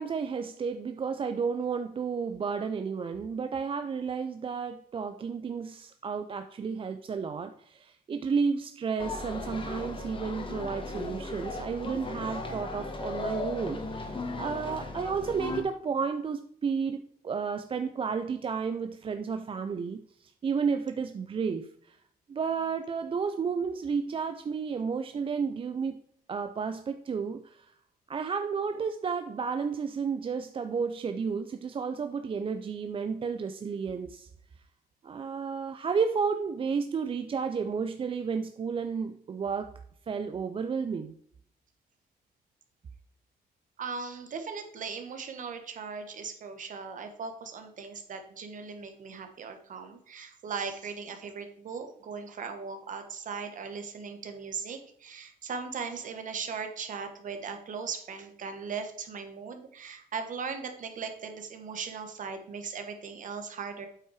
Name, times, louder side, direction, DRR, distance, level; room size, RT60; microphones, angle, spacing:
voice 1, 0.0-22.0 22.3-26.0 26.3-27.7 28.1-34.3 35.0-39.7 40.1-41.2, right 5 dB, 35° right, 8 dB, 0.5 m, -32 dB
sound 1, 9.0-15.6, left 2 dB, 30° left, 1.5 m, -36 dB
voice 2, 43.8-63.9, right 5 dB, 55° right, 6 dB, 1.4 m, -38 dB
8.4 x 5.6 x 4.8 m, 0.64 s
cardioid pair, 120°, 16 cm